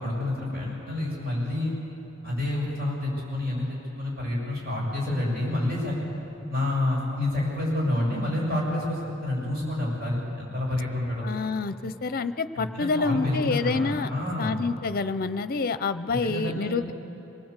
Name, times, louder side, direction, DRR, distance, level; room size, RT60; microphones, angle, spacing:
voice 1, 0.0-1.7 2.2-6.0 6.5-11.3 12.5-14.6 16.2-16.8, left 1 dB, 50° right, -4 dB, 7.4 m, -28 dB
voice 2, 11.2-14.1 14.4-16.9, left 4 dB, 45° left, 12 dB, 0.7 m, -27 dB
25.5 x 20.0 x 8.2 m, 3.0 s
head